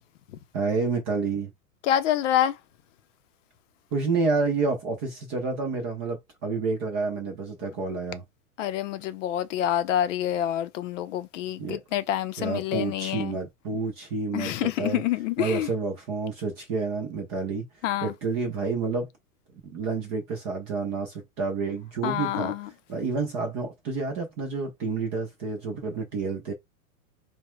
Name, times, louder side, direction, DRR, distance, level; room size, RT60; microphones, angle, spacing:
voice 1, 0.5-1.5 3.9-8.2 11.6-11.8 12.4-15.0 15.4-17.6 18.0-19.1 19.6-22.5 22.9-26.5, right 4 dB, 20° right, 0.4 m, -29 dB
voice 2, 1.8-2.5 8.6-13.4 14.3-15.7 17.8-18.1 22.0-22.7, left 11 dB, 55° left, 0.6 m, -27 dB
4.5 x 2.2 x 3.0 m
supercardioid pair, 145°, 45 cm